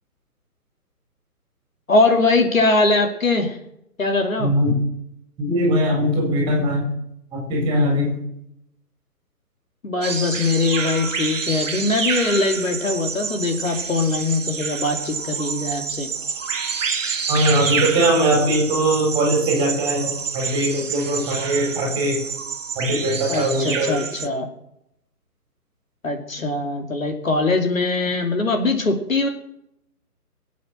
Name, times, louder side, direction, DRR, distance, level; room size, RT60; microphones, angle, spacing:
voice 1, 1.9-3.6 4.0-4.5 9.8-16.1 23.3-24.5 26.0-29.3, left 3 dB, 55° left, 4 dB, 2.6 m, -21 dB
voice 2, 4.4-4.7 5.4-6.9 7.3-8.2 17.3-22.2 22.7-24.0, right 1 dB, 10° right, 0 dB, 4.5 m, -21 dB
sound 1, 10.0-24.3, right 6 dB, 55° right, 1.4 m, -28 dB
21.5 x 8.6 x 6.2 m, 0.79 s
figure-of-eight pair, 145°, 46 cm